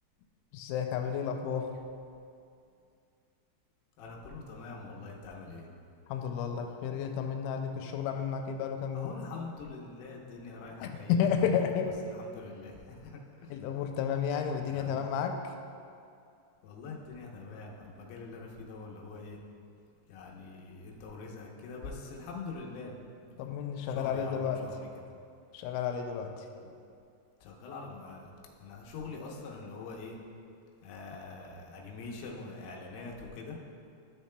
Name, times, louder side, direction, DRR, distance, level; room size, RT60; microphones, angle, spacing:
voice 1, 0.5-1.7 6.1-9.1 10.8-11.9 13.5-15.4 23.4-24.6 25.5-26.5, left 7 dB, 90° left, 5 dB, 2.9 m, -31 dB
voice 2, 4.0-5.7 8.9-11.6 12.2-13.6 14.7-14.9 16.6-19.4 20.1-22.9 23.9-24.9 26.6-26.7 27.4-28.3 28.6-30.2 30.8-33.6, left 3 dB, 75° left, -2 dB, 2.7 m, -44 dB
12.5 x 7.0 x 2.2 m, 2.4 s
omnidirectional pair, 5.3 m